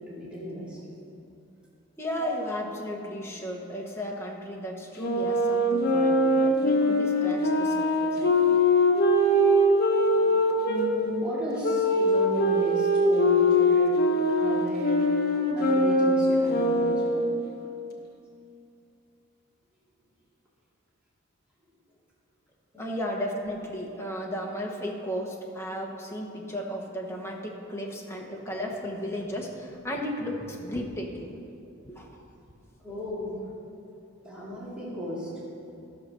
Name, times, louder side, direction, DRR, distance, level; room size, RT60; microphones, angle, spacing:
voice 1, 0.1-0.8 5.8-6.0 10.0-10.4 10.6-13.9 14.4-17.2 22.7-22.9 32.8-33.4 34.2-35.3, equal, 5° right, -9 dB, 2.3 m, -35 dB
voice 2, 2.0-8.6 22.8-31.4 31.8-32.2, equal, 10° left, -1 dB, 1.2 m, -34 dB
Wind instrument woodwind instrument, 5.0-10.8 11.6-17.4, left 1 dB, 50° left, 1.2 m, -22 dB
12.5 x 6.7 x 6.2 m, 2.7 s
head